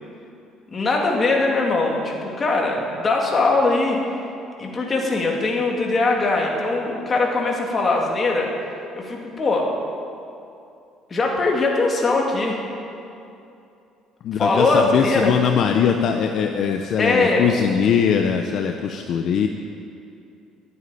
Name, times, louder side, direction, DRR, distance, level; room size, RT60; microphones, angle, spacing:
voice 1, 0.7-4.2 4.6-8.5 9.0-9.7 11.1-12.6 14.4-15.3 17.0-17.5, left 3 dB, 25° left, -1 dB, 2.4 m, -21 dB
voice 2, 14.2-19.5, left 7 dB, 55° left, 4 dB, 0.7 m, -21 dB
11.5 x 9.3 x 9.9 m, 2.6 s
cardioid pair, 135°, 0 cm